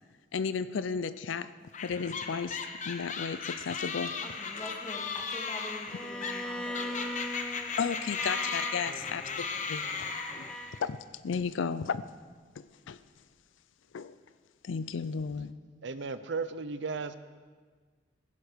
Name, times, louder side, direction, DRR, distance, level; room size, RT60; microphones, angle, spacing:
voice 1, 0.3-2.6 2.9-4.1 5.9-6.1 7.8-9.3 9.7-9.9 10.3-10.5 10.8-11.0 11.2-12.0 12.6-13.0 13.9-14.1 14.6-15.6, left 6 dB, 80° left, 14 dB, 0.4 m, -34 dB
sound 1, 1.7-10.8, left 5 dB, 40° left, 1.0 m, -37 dB
voice 2, 4.2-7.2 7.5-7.6, left 1 dB, 20° left, 0 dB, 2.0 m, -45 dB
Bowed string instrument, 5.9-10.8, equal, 5° left, 0.7 m, -40 dB
voice 3, 15.8-17.1, right 4 dB, 65° right, 12 dB, 0.6 m, -35 dB
16.0 x 11.0 x 5.0 m, 1.5 s
head